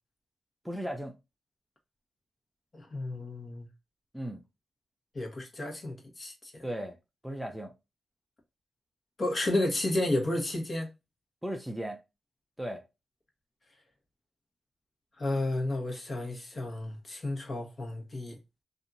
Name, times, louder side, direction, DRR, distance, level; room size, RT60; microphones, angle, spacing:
voice 1, 0.6-1.1 4.1-4.4 6.6-7.0 7.2-7.7 11.4-12.0 12.6-12.8, right 1 dB, 5° right, 0.6 m, -36 dB
voice 2, 2.7-3.7 5.1-6.7 9.2-10.9 15.2-18.4, left 1 dB, 45° left, 1.2 m, -32 dB
2.7 x 2.4 x 2.6 m
cardioid pair, 50°, 0 cm